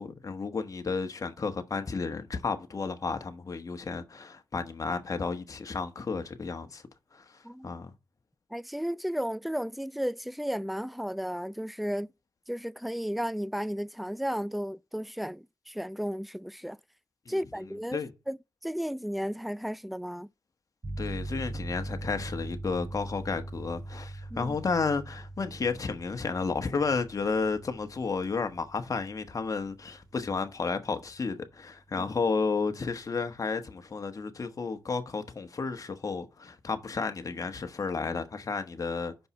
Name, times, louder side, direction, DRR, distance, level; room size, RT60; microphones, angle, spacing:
voice 1, 0.0-6.8 7.1-7.9 17.3-17.4 17.9-18.1 21.0-39.3, left 4 dB, 45° left, 1.2 m, -32 dB
voice 2, 7.4-7.8 8.5-12.1 12.5-16.8 17.3-18.4 18.6-20.3 24.3-24.6 32.0-32.1, equal, ahead, 0.4 m, -34 dB
sound 1, 20.8-31.4, right 2 dB, 35° right, 5.0 m, -41 dB
5.6 x 5.3 x 6.8 m
cardioid pair, 70°, 8 cm